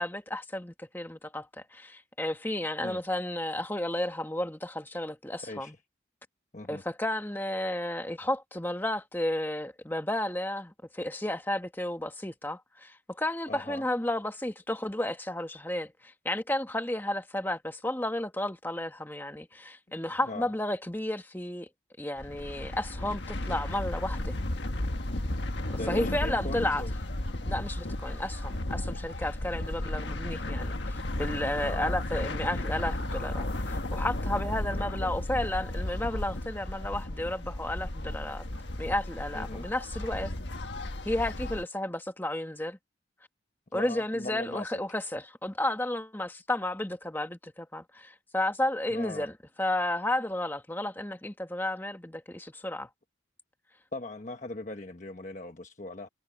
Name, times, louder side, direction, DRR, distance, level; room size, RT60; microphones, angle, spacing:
voice 1, 0.0-5.7 6.7-21.7 22.0-24.4 25.7-26.8 27.4-38.5 38.8-40.3 41.0-42.8 43.7-49.3 49.6-52.9, left 1 dB, 10° left, 1.4 m, -32 dB
voice 2, 5.4-5.7 6.5-6.8 13.5-13.8 20.3-20.5 25.7-26.9 31.6-32.0 34.8-35.1 39.3-39.7 43.7-44.7 48.9-49.3 53.9-56.1, left 2 dB, 40° left, 1.1 m, -40 dB
sound 1, 22.2-41.6, left 1 dB, 65° left, 1.5 m, -34 dB
head